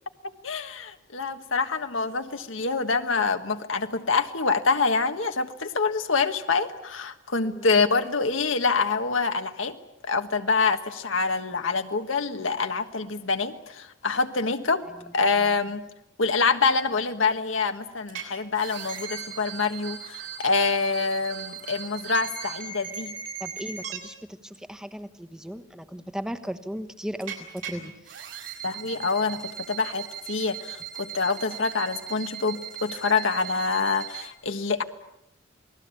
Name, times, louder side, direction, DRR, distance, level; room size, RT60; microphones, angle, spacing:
voice 1, 0.4-9.8 10.0-14.8 15.1-15.8 16.2-23.1 28.6-34.8, left 4 dB, 80° left, 6 dB, 1.4 m, -26 dB
sound 1, 18.1-18.2 18.5-24.0 27.2-27.7 28.0-34.3, right 8 dB, 70° right, 6.3 m, -38 dB
voice 2, 23.4-28.2, equal, 5° right, 9 dB, 1.2 m, -37 dB
28.5 x 19.5 x 8.5 m, 0.84 s
head